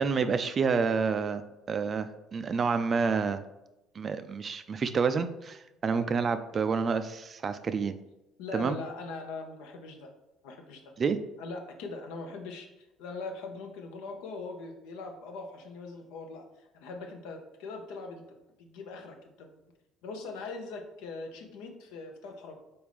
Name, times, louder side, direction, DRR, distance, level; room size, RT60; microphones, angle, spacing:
voice 1, 0.0-1.4 1.7-3.4 4.0-7.9 8.5-8.8 11.0-11.2, right 5 dB, 40° right, 11 dB, 0.3 m, -28 dB
voice 2, 8.4-10.1 10.4-10.8 11.4-18.2 18.6-19.5 20.0-22.6, left 3 dB, 70° left, 4 dB, 0.7 m, -41 dB
4.2 x 3.5 x 3.3 m, 0.95 s
hypercardioid pair, 55°, 0 cm